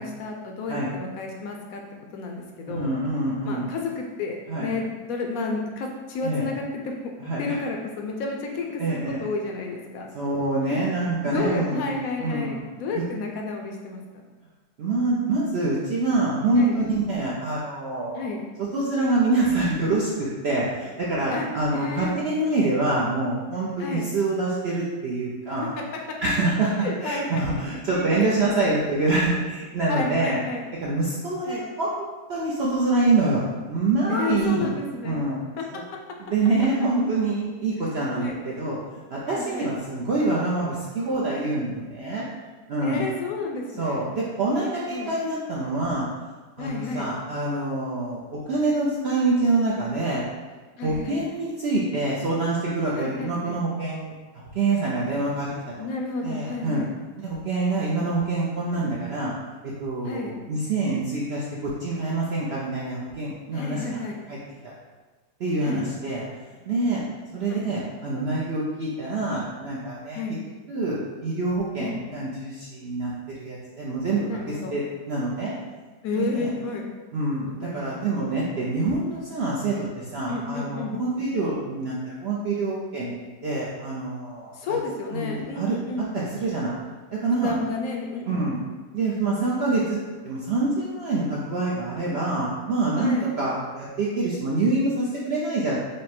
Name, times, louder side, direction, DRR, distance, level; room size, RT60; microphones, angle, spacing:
voice 1, 0.0-1.8 2.1-2.9 3.5-6.9 7.4-10.1 10.7-10.8 11.2-14.0 16.5-16.7 18.2-18.4 21.3-21.5 21.7-22.1 23.8-24.0 26.8-27.4 27.7-28.6 29.9-30.6 31.4-31.6 34.1-35.2 35.6-35.7 38.2-38.4 39.3-39.7 42.8-44.0 44.9-45.1 46.6-47.1 50.8-51.2 53.0-53.6 55.8-56.9 60.0-60.3 63.5-64.2 65.6-65.8 67.5-67.6 70.1-70.4 71.8-72.0 74.2-74.8 76.0-76.8 77.6-78.0 80.3-81.0 84.5-86.1 87.4-88.5 93.0-93.3, left 3 dB, 70° left, 1 dB, 0.9 m, -31 dB
voice 2, 2.7-3.7 4.5-4.7 6.2-6.5 7.2-7.6 8.8-9.2 10.1-11.9 12.2-12.6 12.9-13.0 14.8-18.2 18.6-25.7 26.2-30.4 30.8-34.7 35.0-35.4 35.7-35.8 36.2-38.8 39.1-42.2 42.7-43.0 43.8-46.1 46.6-50.3 50.8-54.1 54.5-55.5 56.2-56.8 57.2-59.3 59.6-64.0 64.3-64.4 65.4-66.3 66.7-67.0 67.3-70.2 70.7-71.0 71.2-75.5 76.2-76.5 77.1-83.1 83.4-84.5 85.1-85.8 86.1-86.8 87.1-87.5 88.3-88.6 88.9-90.0 90.2-95.8, right 2 dB, 70° right, -5 dB, 0.6 m, -26 dB
4.8 x 2.1 x 4.2 m, 1.4 s
omnidirectional pair, 1.8 m